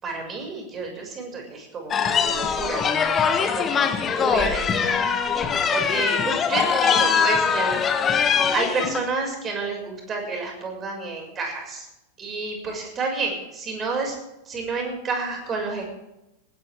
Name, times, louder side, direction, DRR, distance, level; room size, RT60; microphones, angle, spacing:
voice 1, 0.0-2.9 3.3-5.0 5.7-8.2 8.5-11.8 12.2-14.2 14.5-15.8, right 3 dB, 25° right, 2 dB, 6.2 m, -30 dB
sound 1, 1.9-9.0, left 6 dB, 25° left, 1.6 m, -22 dB
20.0 x 17.5 x 3.7 m, 0.92 s
figure-of-eight pair, 90°, 0 cm